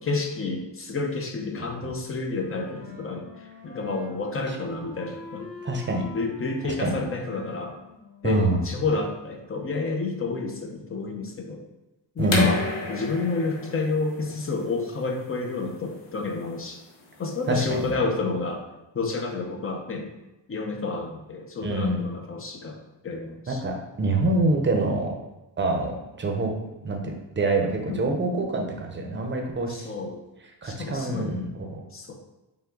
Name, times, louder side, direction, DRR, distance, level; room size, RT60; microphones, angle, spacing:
voice 1, 0.0-5.5 6.1-7.8 8.2-11.6 12.2-12.6 12.9-16.8 17.2-18.6 18.9-20.1 20.5-23.6 27.9-28.1 29.7-30.2 30.6-31.3 31.9-32.1, left 3 dB, 30° left, 2 dB, 0.6 m, -30 dB
Wind instrument woodwind instrument, 2.3-9.0, left 3 dB, 45° left, 1.1 m, -44 dB
voice 2, 5.6-6.0 6.8-6.9 8.2-8.6 12.2-12.5 17.5-18.1 21.6-22.1 23.5-25.1 25.6-26.5 26.8-29.9 30.6-31.8, right 2 dB, 25° right, 2 dB, 0.7 m, -25 dB
sound 1, 12.2-17.8, left 3 dB, 80° left, 1.1 m, -33 dB
5.7 x 2.3 x 3.8 m, 1.0 s
wide cardioid pair, 130°, 44 cm